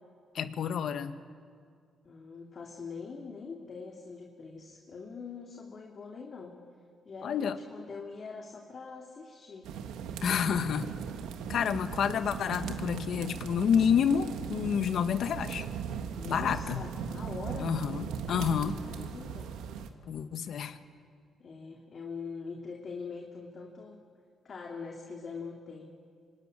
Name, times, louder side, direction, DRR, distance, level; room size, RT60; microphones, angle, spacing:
voice 1, 0.3-1.2 7.2-7.6 10.2-10.9 11.5-15.6 16.2-16.8 17.6-18.8 20.1-20.8, left 8 dB, 65° left, 10 dB, 1.3 m, -29 dB
voice 2, 2.0-6.6 7.1-9.7 16.2-17.7 18.6-19.5 21.4-24.0 24.4-25.9, left 5 dB, 45° left, 1 dB, 2.5 m, -43 dB
sound 1, 9.6-19.9, right 7 dB, 90° right, 1.6 m, -38 dB
25.5 x 19.0 x 9.9 m, 2.1 s
cardioid pair, 90°, 0 cm